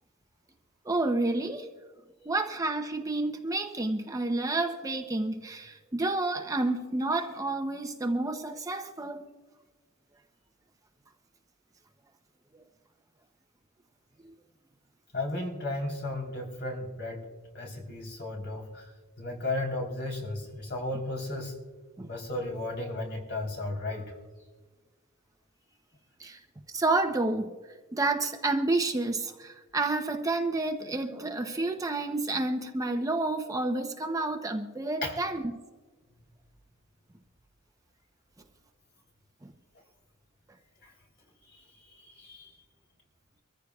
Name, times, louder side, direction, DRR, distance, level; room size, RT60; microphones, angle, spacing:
voice 1, 0.8-1.7 2.3-9.3 22.0-22.1 26.2-26.4 26.7-27.5 27.9-35.4 39.4-39.5, right 2 dB, 15° right, 5 dB, 0.7 m, -29 dB
voice 2, 15.1-17.3 17.5-18.9 19.2-21.5 22.1-24.1 35.0-35.2 40.8-40.9 41.5-42.5, left 2 dB, 55° left, 1 dB, 3.5 m, -34 dB
24.5 x 14.5 x 2.4 m, 1.3 s
head